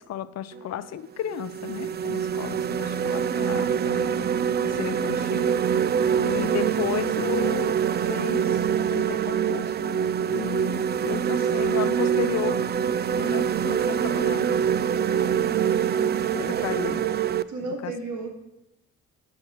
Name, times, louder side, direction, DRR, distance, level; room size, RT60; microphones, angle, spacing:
voice 1, 0.0-4.3 4.6-5.9 6.2-12.6 13.1-14.6 15.4-15.5 16.2-17.1 17.8-17.9, left 11 dB, 60° left, 16 dB, 0.6 m, -34 dB
sound 1, 0.5-0.7 1.3-17.4, right 8 dB, 35° right, 0.4 m, -25 dB
voice 2, 15.0-17.0 17.5-18.3, right 3 dB, 75° right, 1 dB, 2.3 m, -35 dB
13.5 x 6.3 x 4.7 m, 0.90 s
cardioid pair, 90°, 30 cm